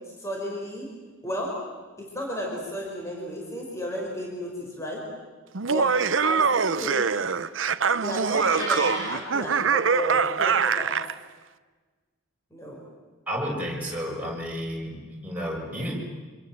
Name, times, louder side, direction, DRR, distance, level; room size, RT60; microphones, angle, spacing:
voice 1, 0.2-0.9 1.2-1.6 2.0-5.1 5.6-7.2 8.0-11.0 12.5-12.8, equal, 15° left, -2 dB, 5.3 m, -33 dB
Laughter, 5.6-11.1, right 5 dB, 70° right, 0.8 m, -24 dB
Meow, 8.3-9.2, equal, 35° left, 8.0 m, -33 dB
voice 2, 13.3-16.0, equal, 10° right, -4 dB, 7.0 m, -31 dB
28.0 x 26.5 x 7.8 m, 1.3 s
head